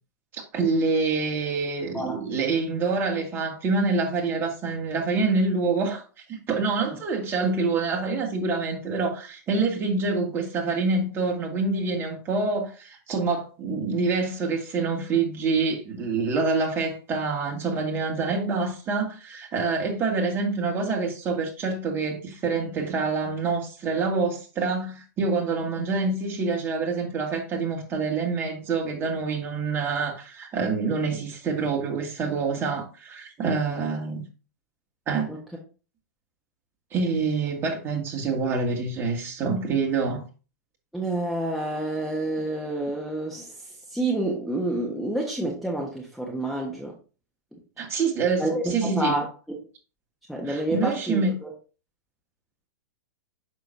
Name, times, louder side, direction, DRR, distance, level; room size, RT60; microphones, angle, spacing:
voice 1, 0.3-6.0 6.3-34.2 35.1-35.3 36.9-40.2 47.8-49.2 50.5-51.3, right 4 dB, 25° right, 2.2 m, -26 dB
voice 2, 40.9-43.6 43.9-46.9 48.4-49.6 50.3-51.5, right 1 dB, ahead, 1.2 m, -29 dB
6.7 x 6.2 x 2.7 m
hypercardioid pair, 130°, 9 cm